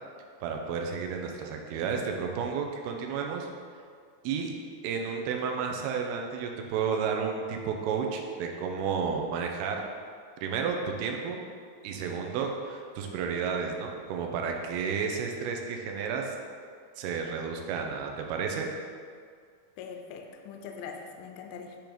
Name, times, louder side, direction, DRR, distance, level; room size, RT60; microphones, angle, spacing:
voice 1, 0.4-3.5 4.2-4.5 4.8-9.8 10.4-11.4 11.8-16.3 17.0-18.7, right 6 dB, 90° right, 2 dB, 2.6 m, -32 dB
voice 2, 19.8-21.8, left 6 dB, 85° left, 4 dB, 1.9 m, -42 dB
8.7 x 3.0 x 5.1 m, 2.1 s
omnidirectional pair, 4.4 m